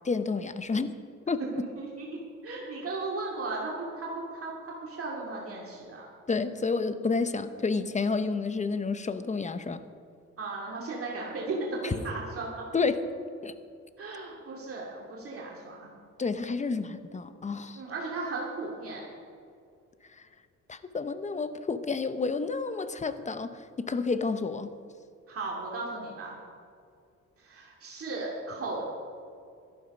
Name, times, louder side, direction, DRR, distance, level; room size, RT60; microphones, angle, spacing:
voice 1, 0.0-1.0 1.3-1.7 6.3-9.8 11.8-11.9 12.7-13.0 13.4-13.5 16.2-17.8 20.1-20.3 20.7-24.7, left 4 dB, 25° left, 11 dB, 0.8 m, -30 dB
voice 2, 1.5-4.5 4.8-6.1 10.4-12.6 14.0-15.9 17.8-19.0 25.3-26.4 27.4-28.8, right 3 dB, 50° right, -3 dB, 2.5 m, -36 dB
13.0 x 11.5 x 5.4 m, 2.4 s
cardioid pair, 90°, 30 cm